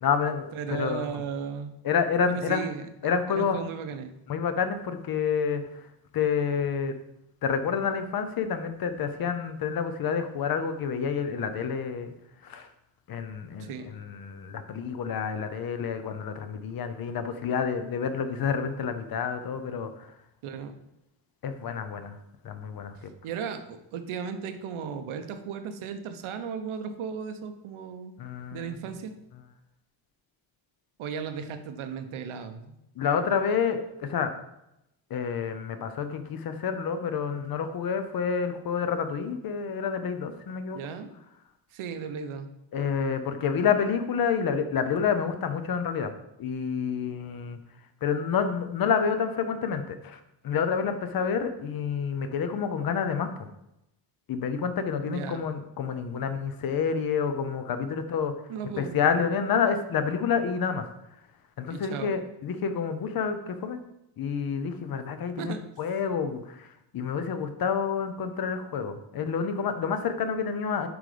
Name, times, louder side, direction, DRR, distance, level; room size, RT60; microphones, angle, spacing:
voice 1, 0.0-1.1 1.8-2.6 3.0-3.6 4.3-5.6 6.1-7.0 7.4-12.1 12.4-12.7 13.1-20.1 21.4-22.2 22.4-23.1 28.2-28.8 33.0-34.3 35.1-40.8 42.7-46.1 46.4-47.6 48.0-53.3 54.3-58.3 58.8-60.9 61.6-63.8 64.2-66.7 66.9-70.9, left 6 dB, 50° left, 9 dB, 0.7 m, -28 dB
voice 2, 0.5-1.7 2.3-2.8 3.3-4.1 13.6-13.9 20.4-20.7 23.2-28.1 28.5-29.2 31.0-32.8 40.7-41.1 41.7-42.5 55.0-55.5 58.5-59.0 61.7-62.1 65.4-65.6, right 6 dB, 90° right, 8 dB, 0.9 m, -35 dB
7.9 x 3.9 x 5.0 m, 0.85 s
cardioid pair, 175°, 48 cm